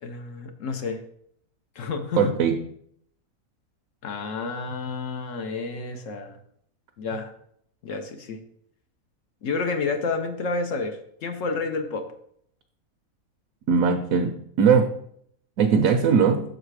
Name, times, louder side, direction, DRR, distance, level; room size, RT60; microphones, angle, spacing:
voice 1, 0.0-1.0 1.8-2.3 4.0-6.4 7.0-7.3 7.8-8.4 9.4-12.1, left 4 dB, 60° left, 6 dB, 1.0 m, -30 dB
voice 2, 2.2-2.6 13.7-14.3 14.6-14.9 15.6-16.4, right 6 dB, 70° right, 5 dB, 1.0 m, -19 dB
6.5 x 5.0 x 4.7 m, 0.68 s
omnidirectional pair, 1.6 m